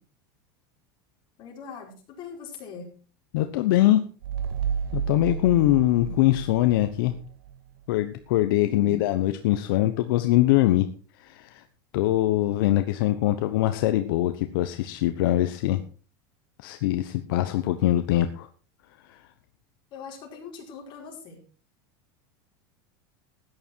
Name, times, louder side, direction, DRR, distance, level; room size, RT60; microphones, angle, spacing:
voice 1, 1.4-2.9 8.6-9.0 19.9-21.4, left 5 dB, 40° left, 0 dB, 5.1 m, -41 dB
voice 2, 3.3-4.0 4.9-7.1 7.9-10.9 11.2-11.6 11.9-15.8 16.6-18.5 19.1-19.2, left 14 dB, 75° left, 8 dB, 1.1 m, -23 dB
sound 1, 4.2-7.6, right 8 dB, 80° right, 0.9 m, -32 dB
14.0 x 9.9 x 4.6 m, 0.37 s
supercardioid pair, 145°, 12 cm